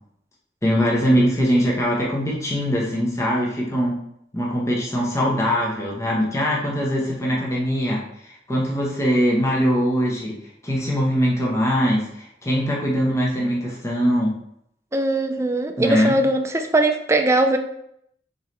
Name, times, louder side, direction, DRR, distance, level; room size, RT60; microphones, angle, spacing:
voice 1, 0.6-4.0 4.3-10.3 10.6-14.3 15.8-16.2, equal, 15° left, -3 dB, 0.8 m, -22 dB
voice 2, 14.9-17.6, right 2 dB, 15° right, 5 dB, 0.4 m, -20 dB
4.0 x 3.7 x 3.1 m, 0.73 s
head